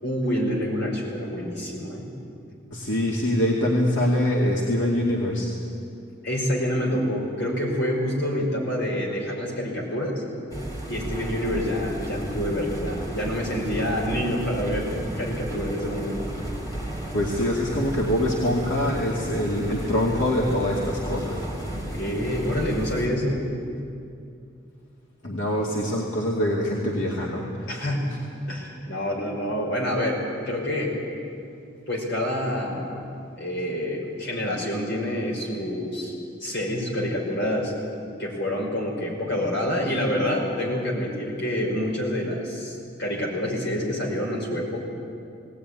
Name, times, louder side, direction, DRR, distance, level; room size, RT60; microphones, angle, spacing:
voice 1, 0.0-2.1 6.2-10.2 10.9-16.3 21.7-23.5 27.7-28.2 28.5-31.0 31.9-33.0 33.3-36.1 36.4-37.7 38.2-44.8, equal, 65° left, -1 dB, 5.3 m, -27 dB
voice 2, 2.7-5.5 17.1-21.4 25.2-27.7, left 1 dB, 90° left, -3 dB, 2.4 m, -24 dB
sound 1, 10.5-23.1, right 1 dB, 20° left, 3.5 m, -33 dB
19.0 x 17.5 x 9.8 m, 2.5 s
head